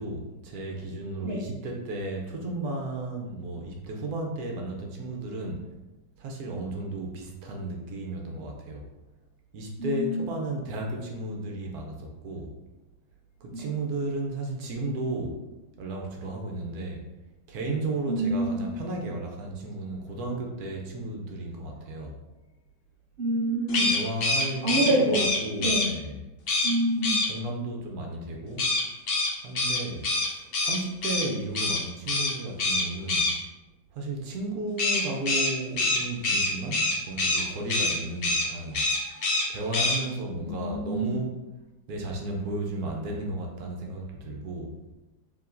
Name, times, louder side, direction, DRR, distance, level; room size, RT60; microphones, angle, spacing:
voice 1, 0.0-5.7 6.2-8.9 9.5-12.5 13.4-15.4 15.8-17.0 17.5-22.1 23.9-26.2 27.3-28.7 29.4-33.3 33.9-38.8 39.5-41.4 41.9-44.7, right 2 dB, 65° right, 1 dB, 1.0 m, -34 dB
voice 2, 9.8-10.2 13.5-13.7 18.1-18.6 23.2-23.9 24.6-25.3 25.6-25.9 26.6-27.2 40.4-41.1, right 1 dB, 90° right, -6 dB, 0.5 m, -26 dB
sound 1, 23.7-25.9 26.5-26.7 27.0-27.3 28.6-31.2 31.5-31.8 32.1-32.3 32.6-33.3 34.8-37.4 37.7-37.9 38.2-38.5 38.7-39.4 39.7-40.0, left 2 dB, 85° left, 0.5 m, -25 dB
4.8 x 3.2 x 2.5 m, 1.0 s
omnidirectional pair, 2.0 m